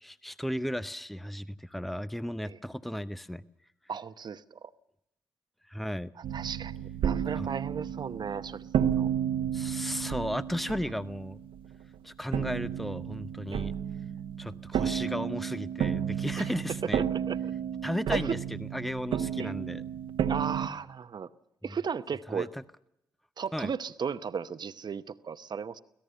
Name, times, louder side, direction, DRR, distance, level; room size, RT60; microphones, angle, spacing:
voice 1, 0.0-3.4 5.7-6.1 7.3-7.5 9.5-11.4 12.0-13.7 14.4-17.0 17.8-19.8 21.6-21.8 22.3-22.5 23.5-23.7, equal, ahead, 0.7 m, -35 dB
voice 2, 3.9-4.7 6.3-6.8 7.0-9.1 13.5-13.7 16.4-16.5 17.0-17.5 18.1-18.4 19.4-19.5 20.3-21.3 21.6-22.5 23.4-25.8, right 6 dB, 50° right, 0.9 m, -35 dB
sound 1, 6.2-11.9 12.3-20.7, right 9 dB, 70° right, 1.2 m, -32 dB
25.0 x 17.0 x 6.7 m
hypercardioid pair, 45°, 9 cm